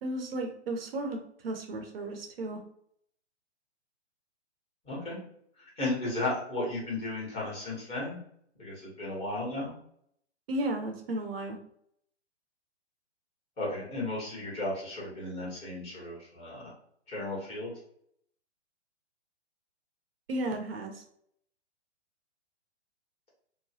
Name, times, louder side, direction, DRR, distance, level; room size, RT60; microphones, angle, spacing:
voice 1, 0.0-2.6 10.5-11.6 20.3-21.0, right 1 dB, 55° right, 4 dB, 0.7 m, -34 dB
voice 2, 4.8-5.2 5.8-8.2 8.6-9.7 13.6-16.7 17.1-17.7, left 2 dB, 15° left, -6 dB, 1.3 m, -34 dB
2.9 x 2.2 x 2.8 m, 0.67 s
hypercardioid pair, 130°, 35 cm